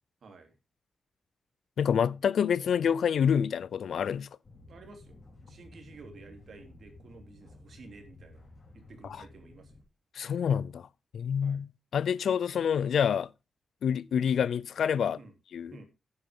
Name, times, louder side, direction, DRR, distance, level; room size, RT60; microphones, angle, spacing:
voice 1, 0.2-0.6 4.7-5.2 5.5-8.4 8.7-9.8 11.4-11.6 15.1-15.3 15.7-15.8, right 3 dB, 60° right, 3.3 m, -52 dB
voice 2, 1.8-4.3 10.1-10.9 11.1-13.3 13.8-15.2 15.5-15.7, left 7 dB, 80° left, 0.5 m, -27 dB
sound 1, 4.4-9.8, left 2 dB, 40° left, 4.7 m, -53 dB
13.0 x 9.8 x 3.7 m
wide cardioid pair, 155°, 0 cm